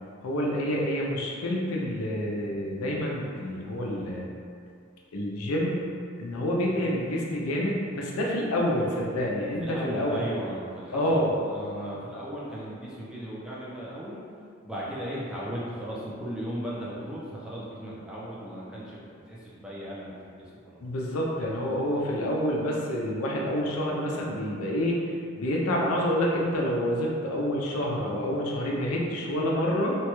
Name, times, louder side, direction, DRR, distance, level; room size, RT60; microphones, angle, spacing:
voice 1, 0.2-4.2 5.1-5.8 6.2-10.2 10.9-11.3 20.8-25.0 25.4-30.0, equal, 90° left, -3 dB, 0.5 m, -28 dB
voice 2, 9.6-14.2 14.6-20.1 20.5-20.8, equal, 5° right, -7 dB, 0.4 m, -36 dB
3.0 x 2.2 x 2.9 m, 2.4 s
head